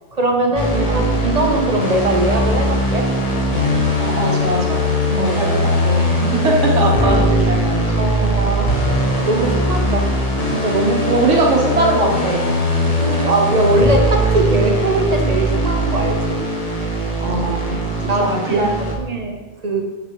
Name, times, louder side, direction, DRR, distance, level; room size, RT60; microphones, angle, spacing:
voice 1, 0.1-3.1 5.1-5.3 6.4-6.5 8.0-10.0 10.5-11.1 12.9-16.4 18.1-19.8, right 2 dB, 40° right, 2 dB, 0.8 m, -21 dB
sound 1, 0.5-19.0, equal, 35° left, 0.9 m, -20 dB
voice 2, 0.9-1.2 4.0-8.1 9.8-10.1 11.0-12.5 17.2-17.8 18.2-18.9, right 2 dB, 80° right, -2 dB, 1.6 m, -21 dB
7.3 x 6.0 x 3.0 m, 1.2 s
omnidirectional pair, 1.2 m